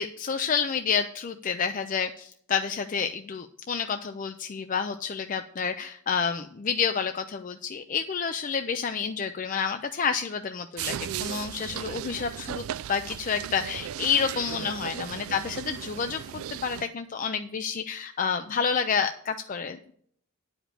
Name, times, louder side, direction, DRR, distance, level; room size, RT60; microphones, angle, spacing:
voice 1, 0.0-19.8, left 6 dB, 35° left, 8 dB, 0.4 m, -29 dB
sound 1, 10.8-16.9, right 10 dB, 70° right, 0.3 m, -36 dB
9.9 x 5.1 x 7.5 m, 0.63 s
head